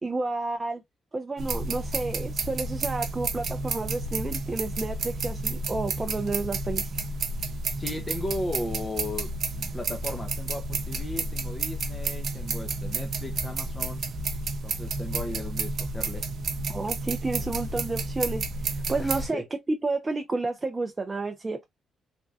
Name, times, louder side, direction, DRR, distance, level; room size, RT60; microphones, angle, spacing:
voice 1, 0.0-0.8 1.1-6.9 16.7-21.7, right 3 dB, 25° right, 0.5 m, -31 dB
sound 1, 1.4-19.3, right 3 dB, 60° right, 0.8 m, -31 dB
voice 2, 7.8-14.0 14.6-16.2 19.0-19.4, left 1 dB, 20° left, 0.6 m, -36 dB
3.4 x 2.2 x 2.5 m
cardioid pair, 90°, 0 cm